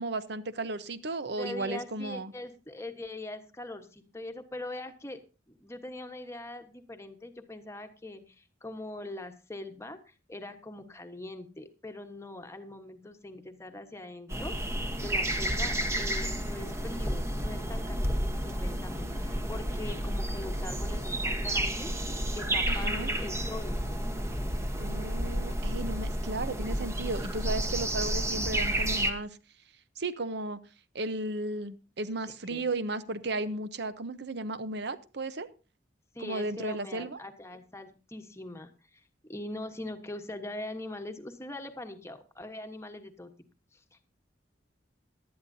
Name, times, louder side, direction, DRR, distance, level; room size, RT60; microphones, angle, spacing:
voice 1, 0.0-2.3 22.7-23.1 24.8-29.4 30.0-30.6 30.9-35.5 36.2-37.2, right 2 dB, 60° right, 13 dB, 0.8 m, -34 dB
voice 2, 1.4-5.2 5.5-23.8 32.5-32.7 36.1-43.3 43.7-44.0, left 2 dB, 15° left, 6 dB, 1.2 m, -42 dB
sound 1, 14.3-29.1, right 1 dB, 15° right, 1.1 m, -31 dB
18.0 x 12.0 x 2.7 m, 0.32 s
head